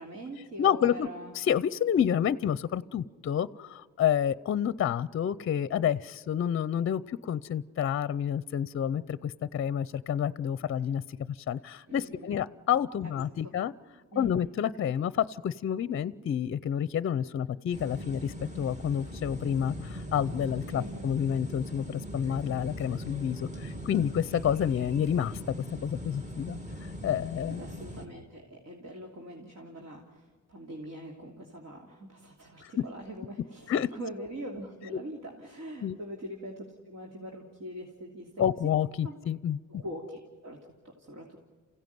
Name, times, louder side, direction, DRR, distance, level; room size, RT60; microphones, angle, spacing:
voice 1, 0.0-1.3 10.9-11.0 11.9-12.4 13.1-13.2 14.1-14.5 20.7-21.1 27.5-38.3 39.0-39.2 39.7-41.4, equal, 60° right, 0 dB, 3.1 m, -43 dB
voice 2, 0.6-1.1 1.3-11.0 11.3-13.7 14.2-25.5 25.8-26.6 27.0-27.6 32.8-32.9 33.7-33.9 35.8-36.0 38.4-39.6, left 9 dB, 45° left, 18 dB, 0.6 m, -29 dB
sound 1, 17.7-28.0, equal, 25° right, 2.6 m, -40 dB
28.5 x 16.0 x 9.4 m, 1.5 s
cardioid pair, 90°, 30 cm